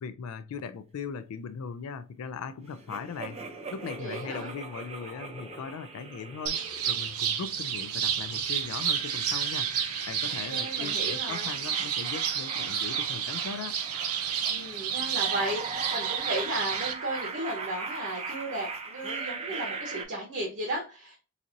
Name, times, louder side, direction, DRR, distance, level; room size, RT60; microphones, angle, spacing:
voice 1, 0.0-9.7 10.1-13.8, left 6 dB, 75° left, 0.3 m, -39 dB
sound 1, 2.6-11.3, equal, 10° left, 0.6 m, -51 dB
sound 2, 2.9-7.6 8.1-20.1, right 4 dB, 30° right, 0.5 m, -40 dB
voice 2, 4.0-4.5 10.3-11.5 14.5-21.2, right 1 dB, 55° right, 1.0 m, -35 dB
sound 3, 6.5-16.9, right 8 dB, 80° right, 0.5 m, -31 dB
4.1 x 2.6 x 2.5 m
head